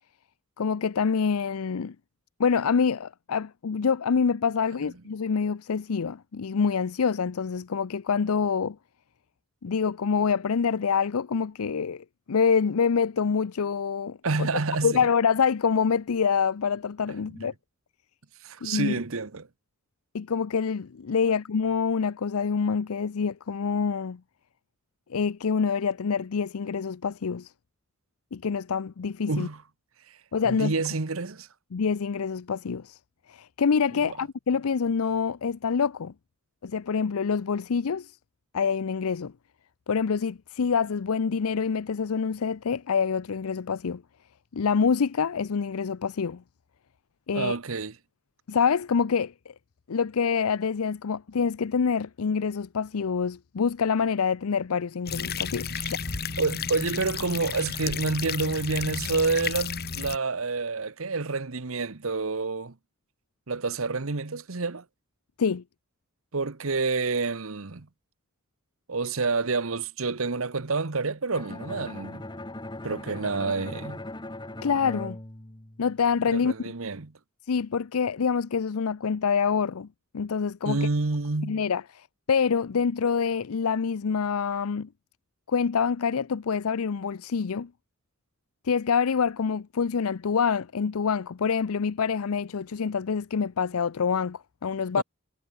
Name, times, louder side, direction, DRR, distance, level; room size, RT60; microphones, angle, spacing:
voice 1, 0.6-1.9 2.4-8.8 9.6-14.5 14.8-17.5 18.6-19.0 20.1-24.2 25.1-27.5 28.3-29.5 30.3-30.7 31.7-33.0 33.3-36.1 36.6-38.2 38.5-39.3 39.9-44.0 44.5-46.4 47.3-47.6 48.5-49.5 49.9-56.0 65.4-65.6 74.6-75.2 75.8-76.5 77.5-79.9 80.1-80.8 81.5-84.9 85.5-87.7 88.6-95.0, left 6 dB, 85° left, 0.5 m, -26 dB
voice 2, 14.2-15.0 17.3-17.5 18.4-19.5 29.3-29.6 30.4-31.5 47.3-48.0 55.8-55.9 56.4-62.7 63.5-64.8 66.3-67.9 68.9-72.2 72.8-74.0 76.3-77.1 80.6-81.6 95.0-95.1, right 3 dB, 70° right, 1.1 m, -28 dB
sound 1, 55.1-60.2, left 6 dB, 45° left, 1.8 m, -32 dB
Bowed string instrument, 71.3-76.2, left 1 dB, 20° left, 1.6 m, -39 dB
head